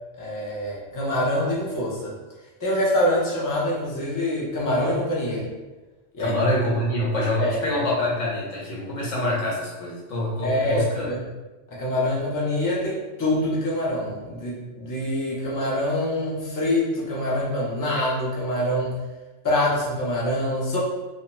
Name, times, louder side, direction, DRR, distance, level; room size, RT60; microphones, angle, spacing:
voice 1, 0.2-2.1 2.6-5.5 6.1-6.4 7.4-7.6 10.4-11.3 11.8-19.0 19.4-20.8, left 1 dB, 30° left, -5 dB, 0.4 m, -25 dB
voice 2, 6.2-11.1, left 1 dB, 80° left, -4 dB, 1.1 m, -25 dB
2.6 x 2.1 x 3.0 m, 1.2 s
omnidirectional pair, 1.3 m